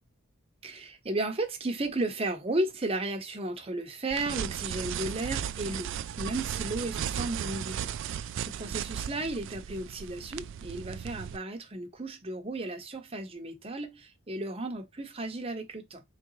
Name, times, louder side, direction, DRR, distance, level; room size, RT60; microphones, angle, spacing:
voice 1, 0.6-16.0, right 2 dB, 30° right, 0.8 m, -34 dB
sound 1, 4.1-11.4, right 9 dB, 60° right, 0.3 m, -36 dB
3.9 x 3.2 x 3.1 m
head